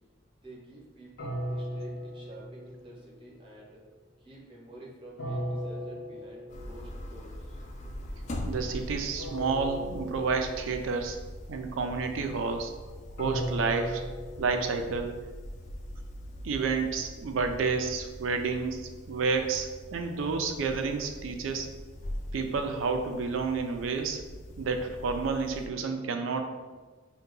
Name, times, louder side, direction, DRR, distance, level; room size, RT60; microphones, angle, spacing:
voice 1, 0.4-3.8 4.2-7.6, right 1 dB, 25° right, -4 dB, 0.7 m, -49 dB
sound 1, 1.2-3.2 5.2-7.0 9.2-11.0 13.2-15.4, equal, 70° left, 0.9 m, -37 dB
sound 2, 6.5-25.7, equal, 35° left, 0.3 m, -42 dB
voice 2, 8.5-11.2 11.5-12.7 13.2-14.0 14.4-15.2 16.4-21.7 22.3-24.2 24.6-26.4, right 4 dB, 90° right, 5 dB, 0.4 m, -30 dB
2.8 x 2.2 x 3.8 m, 1.3 s
head